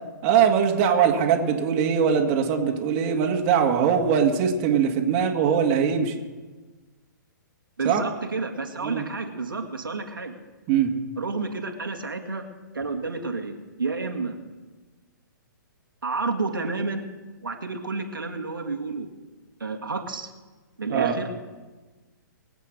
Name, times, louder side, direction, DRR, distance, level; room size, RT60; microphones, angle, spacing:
voice 1, 0.2-6.2 7.8-8.0 8.8-9.0 10.7-10.9 20.9-21.1, right 7 dB, 35° right, 2 dB, 2.0 m, -21 dB
voice 2, 7.8-10.3 11.2-12.4 12.7-14.4 16.0-17.1 17.4-19.1 19.6-20.3 20.8-21.3, right 3 dB, 85° right, 3 dB, 2.0 m, -30 dB
22.5 x 8.3 x 6.6 m, 1.3 s
hypercardioid pair, 130°, 11 cm